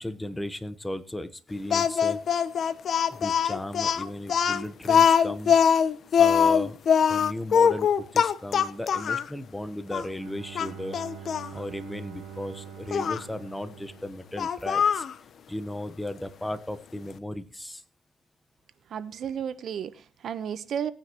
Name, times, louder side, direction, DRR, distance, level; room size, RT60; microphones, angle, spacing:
voice 1, 0.0-2.2 3.1-5.6 6.1-6.8 7.1-11.0 11.5-15.0 15.5-17.8, left 1 dB, 10° left, 1.1 m, -35 dB
Speech, 1.7-9.3 9.9-10.0 10.5-11.5 12.9-13.2 14.4-15.1, left 7 dB, 55° left, 0.8 m, -22 dB
Bowed string instrument, 9.9-14.9, right 9 dB, 85° right, 1.3 m, -45 dB
voice 2, 18.9-20.9, right 8 dB, 65° right, 1.0 m, -33 dB
18.0 x 9.6 x 3.0 m
cardioid pair, 90°, 0 cm